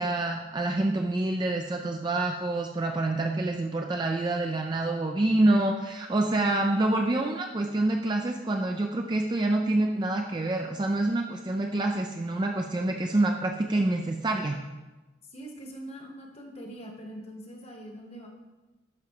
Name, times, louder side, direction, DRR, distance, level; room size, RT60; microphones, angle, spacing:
voice 1, 0.0-14.6, right 2 dB, 25° right, 2 dB, 0.3 m, -27 dB
voice 2, 15.3-18.3, right 1 dB, 35° left, 2 dB, 1.1 m, -43 dB
11.5 x 5.1 x 2.9 m, 1.1 s
head